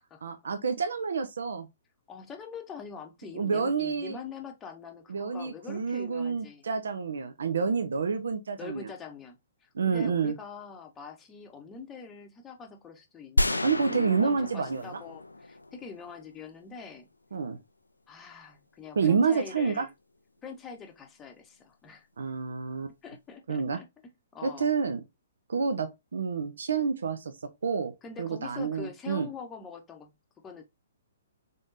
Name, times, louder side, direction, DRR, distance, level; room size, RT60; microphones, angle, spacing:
voice 1, 0.2-1.7 3.3-4.2 5.1-8.9 9.7-10.4 13.6-15.0 17.3-17.6 19.0-19.9 22.2-22.9 23.5-23.8 24.4-25.0 25.5-27.3 27.6-27.9 28.2-29.3, right 5 dB, 65° right, 0.5 m, -28 dB
voice 2, 2.1-6.6 8.6-17.1 18.1-19.9 20.4-22.1 23.0-23.9 24.3-24.7 28.0-30.1 30.4-30.6, left 6 dB, 15° left, 0.8 m, -44 dB
sound 1, 13.4-16.3, left 2 dB, 85° left, 0.4 m, -31 dB
3.7 x 3.5 x 2.5 m
figure-of-eight pair, 120°, 0 cm